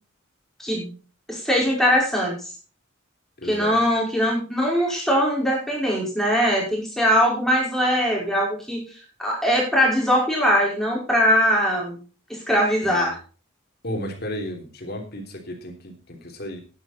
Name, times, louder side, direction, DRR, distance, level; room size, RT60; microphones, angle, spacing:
voice 1, 1.3-2.4 3.4-12.0 12.3-13.2, equal, ahead, -3 dB, 5.2 m, -21 dB
voice 2, 3.4-3.8 12.8-13.1 13.8-16.6, equal, 50° left, 2 dB, 3.3 m, -33 dB
11.5 x 10.5 x 4.3 m, 0.36 s
head